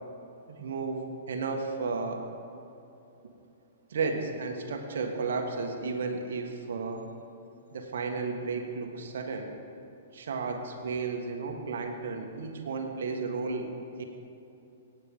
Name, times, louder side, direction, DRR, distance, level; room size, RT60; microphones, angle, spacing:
voice 1, 0.5-2.2 3.9-7.0 7.7-9.5 10.1-13.7 14.0-14.1, right 4 dB, 65° right, 3 dB, 1.4 m, -33 dB
18.0 x 8.3 x 3.6 m, 2.9 s
figure-of-eight pair, 115°, 0 cm